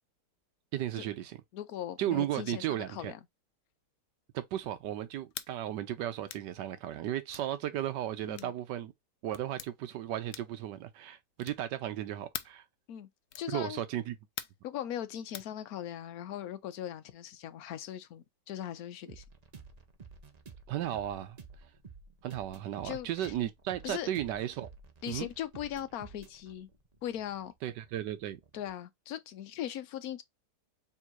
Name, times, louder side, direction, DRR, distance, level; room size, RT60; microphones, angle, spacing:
voice 1, 0.7-1.4 2.0-3.1 4.3-8.9 9.2-12.6 13.5-14.2 20.7-21.4 22.2-24.7 25.1-25.3 27.6-28.4, right 12 dB, 85° right, 1.3 m, -35 dB
voice 2, 1.5-3.2 8.2-8.5 12.9-13.1 13.4-13.8 14.6-19.2 22.8-23.3 23.8-24.1 25.0-26.7 27.0-27.5 28.5-30.2, left 11 dB, 65° left, 1.1 m, -39 dB
sound 1, 5.3-5.5 6.3-6.5 7.3-7.5 8.3-8.6 9.3-9.7 10.3-10.6 11.4-11.7 12.3-12.6 13.3-13.5 14.4-14.7 15.3-15.5, left 11 dB, 90° left, 1.3 m, -43 dB
sound 2, 19.1-28.7, right 5 dB, 55° right, 0.4 m, -52 dB
4.5 x 3.6 x 2.5 m
omnidirectional pair, 1.8 m